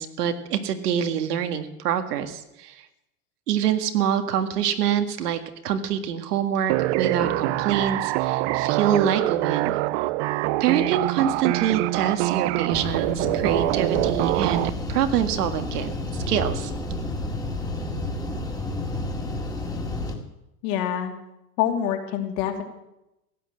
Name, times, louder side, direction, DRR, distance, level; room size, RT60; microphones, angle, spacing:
voice 1, 0.0-2.8 3.5-9.8 10.6-16.7, right 9 dB, 80° right, 8 dB, 1.9 m, -25 dB
sound 1, 6.7-14.7, right 18 dB, 50° right, 0.6 m, -24 dB
sound 2, 12.7-20.2, left 2 dB, 10° left, 2.0 m, -30 dB
voice 2, 20.6-21.1 21.6-22.6, left 10 dB, 55° left, 3 dB, 2.9 m, -26 dB
16.0 x 9.9 x 7.7 m, 0.90 s
supercardioid pair, 130°, 46 cm